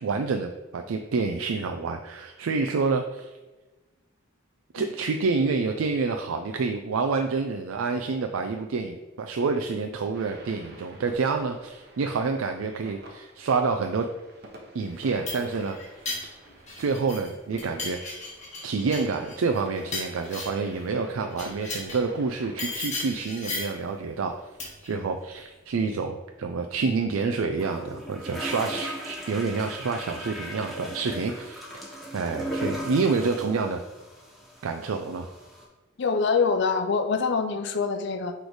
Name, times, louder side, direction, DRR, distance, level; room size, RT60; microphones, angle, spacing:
voice 1, 0.0-3.3 4.7-14.1 14.7-15.8 16.8-18.3 18.6-31.7 32.1-33.8 34.6-35.3, right 4 dB, 85° right, 5 dB, 0.4 m, -28 dB
sound 1, 10.1-22.7, right 1 dB, 50° right, 1.0 m, -50 dB
sound 2, 14.9-17.3 17.6-20.7 21.3-22.1 22.6-23.8 24.6-24.9, left 3 dB, 35° left, 1.4 m, -35 dB
sound 3, 27.6-35.6, equal, ahead, 1.1 m, -37 dB
voice 2, 36.0-38.3, left 5 dB, 55° left, 8 dB, 0.5 m, -25 dB
6.3 x 3.3 x 4.7 m, 1.2 s
head